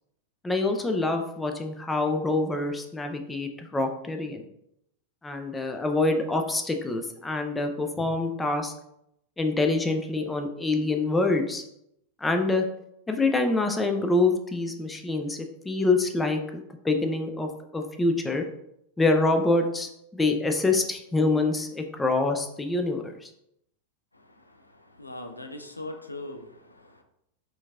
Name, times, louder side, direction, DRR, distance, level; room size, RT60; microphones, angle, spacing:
voice 1, 0.4-4.5 5.2-8.7 9.4-11.6 12.2-12.6 13.1-15.4 15.6-18.4 19.0-23.3, left 2 dB, 10° left, 5 dB, 0.4 m, -26 dB
voice 2, 25.0-27.0, left 2 dB, 85° left, 5 dB, 0.4 m, -40 dB
4.3 x 2.7 x 2.4 m, 0.79 s
figure-of-eight pair, 90°, 0 cm